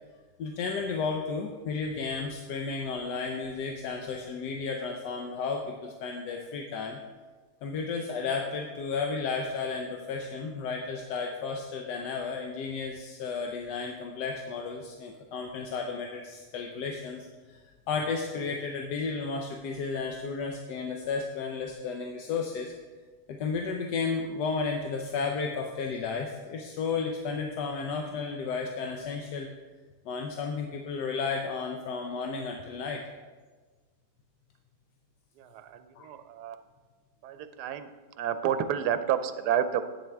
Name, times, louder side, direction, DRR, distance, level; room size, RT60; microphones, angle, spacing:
voice 1, 0.4-7.0 7.6-17.6 17.9-22.7 23.3-29.5 30.0-33.0 36.0-36.1, left 4 dB, 90° left, 2 dB, 1.3 m, -33 dB
voice 2, 35.4-36.6 37.2-37.9 38.2-39.8, right 9 dB, 85° right, 10 dB, 1.2 m, -30 dB
10.5 x 8.7 x 3.4 m, 1.4 s
omnidirectional pair, 1.7 m